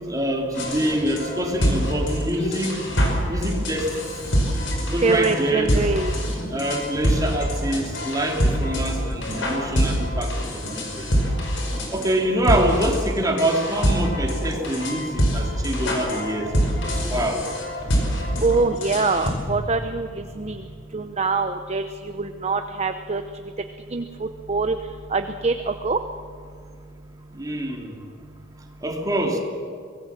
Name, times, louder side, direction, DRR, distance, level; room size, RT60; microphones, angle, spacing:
voice 1, 0.1-2.7 3.3-3.9 4.9-5.7 6.5-11.1 11.9-16.5 16.9-17.4 18.3-18.4 19.5-19.6 20.4-20.5 27.3-28.0 28.8-29.4, right 1 dB, 20° right, 0 dB, 3.0 m, -25 dB
sound 1, 0.6-19.3, equal, 80° left, 5.2 m, -25 dB
voice 2, 5.0-6.2 18.4-20.7 20.9-23.2 23.9-24.8 25.1-26.0, right 3 dB, 35° right, 8 dB, 0.8 m, -24 dB
24.5 x 18.5 x 7.4 m, 2.2 s
head